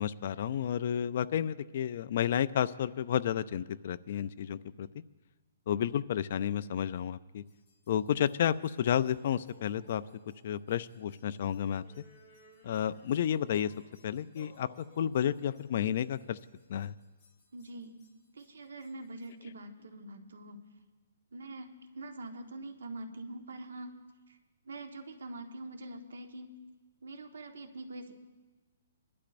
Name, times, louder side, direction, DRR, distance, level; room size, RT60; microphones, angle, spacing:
voice 1, 0.0-4.9 5.7-7.4 7.9-10.0 10.4-12.0 12.6-13.7 14.0-16.4 16.7-16.9, left 9 dB, 45° left, 13 dB, 0.3 m, -31 dB
sound 1, 7.4-19.4, left 2 dB, 15° left, 2.9 m, -61 dB
voice 2, 17.5-17.9 18.3-20.6 21.3-23.9 24.3-24.4 24.6-26.5 27.0-28.1, right 2 dB, 90° right, 6 dB, 1.3 m, -44 dB
24.5 x 11.5 x 2.6 m, 1.2 s
hypercardioid pair, 170°, 0 cm